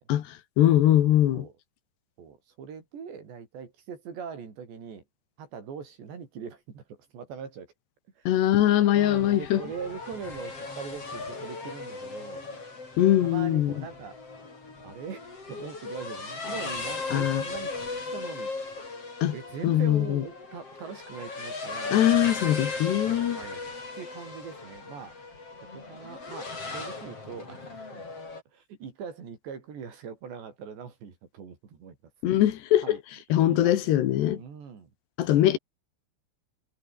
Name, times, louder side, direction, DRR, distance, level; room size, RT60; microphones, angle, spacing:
voice 1, 0.1-1.5 8.3-9.6 13.0-13.7 17.1-17.4 19.2-19.3 19.6-20.2 21.9-23.4 32.2-33.0 33.3-34.4 35.2-35.6, left 12 dB, 75° left, 3.8 m, -22 dB
voice 2, 2.2-5.0 5.4-7.7 8.2-8.3 8.9-12.5 13.2-14.2 14.8-17.8 18.1-18.7 19.3-22.3 23.0-25.2 25.7-28.2 28.5-32.0 32.8-33.0 33.5-33.9 34.3-34.9, right 6 dB, 80° right, 6.9 m, -41 dB
sound 1, 8.9-28.4, left 3 dB, 35° left, 6.8 m, -37 dB
omnidirectional pair, 4.9 m